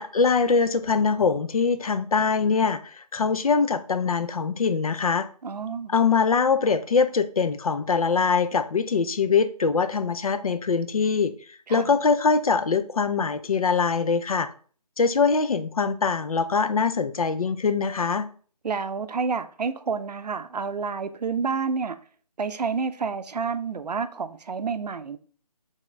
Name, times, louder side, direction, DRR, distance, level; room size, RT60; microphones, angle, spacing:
voice 1, 0.0-5.3 5.9-14.5 15.0-18.3, left 5 dB, 60° left, 0.4 m, -23 dB
voice 2, 5.4-5.9 11.7-11.9 18.6-22.0 22.4-25.2, right 5 dB, 75° right, 0.5 m, -29 dB
4.2 x 3.5 x 3.2 m
figure-of-eight pair, 170°, 21 cm